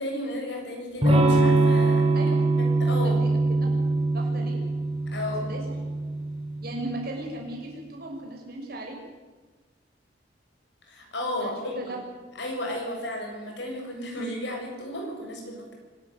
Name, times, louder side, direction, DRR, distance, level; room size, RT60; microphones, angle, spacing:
voice 1, 0.0-2.3 2.6-3.2 5.1-5.5 10.9-12.0 12.4-15.7, left 1 dB, 65° left, 1 dB, 7.3 m, -33 dB
Electric guitar / Strum, 1.0-6.7, right 2 dB, 30° right, 5.6 m, -23 dB
voice 2, 3.0-3.7 4.1-4.6 5.4-5.6 6.6-9.0 11.4-12.0, right 1 dB, 55° right, -1 dB, 6.5 m, -37 dB
25.5 x 13.5 x 9.4 m, 1.3 s
head